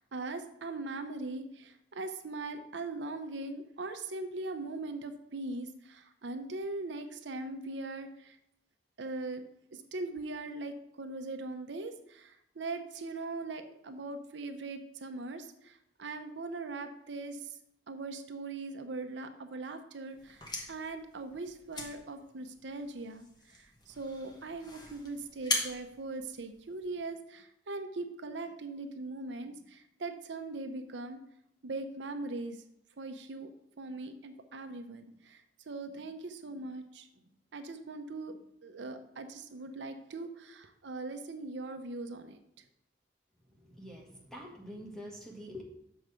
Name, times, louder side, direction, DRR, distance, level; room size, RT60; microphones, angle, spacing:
voice 1, 0.0-8.4 9.0-9.5 9.7-17.6 17.9-31.2 31.6-32.6 33.0-33.5 33.8-37.1 37.5-42.4, right 3 dB, 75° right, 7 dB, 0.7 m, -40 dB
sound 1, 20.2-27.0, left 2 dB, 25° left, 1.1 m, -40 dB
voice 2, 43.5-45.6, equal, 5° left, -2 dB, 1.5 m, -46 dB
6.7 x 4.7 x 6.2 m, 0.78 s
head